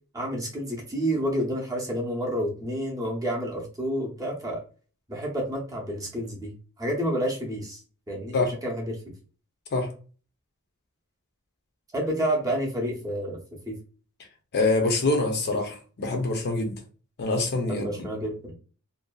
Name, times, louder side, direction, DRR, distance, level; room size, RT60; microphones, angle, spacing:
voice 1, 0.1-4.6 5.1-6.5 6.8-7.8 8.1-9.0 11.9-13.4 13.7-13.8 17.7-18.5, equal, 15° right, 0.6 m, -29 dB
voice 2, 14.5-16.8 17.2-17.9, left 2 dB, 45° left, 0.5 m, -25 dB
2.6 x 2.2 x 2.2 m
head